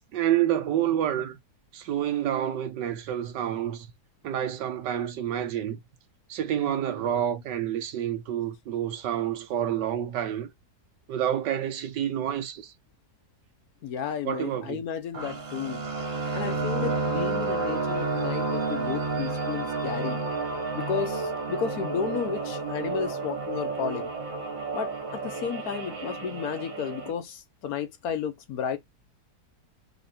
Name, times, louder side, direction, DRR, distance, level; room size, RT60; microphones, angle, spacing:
voice 1, 0.0-1.4 1.7-3.9 4.2-5.8 6.3-10.5 11.1-12.7 14.2-14.8, right 10 dB, 90° right, 1.5 m, -28 dB
voice 2, 13.8-15.8 16.3-20.2 20.7-24.1 24.7-28.8, left 7 dB, 65° left, 1.2 m, -33 dB
sound 1, 15.1-27.1, right 3 dB, 50° right, 1.7 m, -31 dB
4.3 x 3.0 x 4.2 m
omnidirectional pair, 1.8 m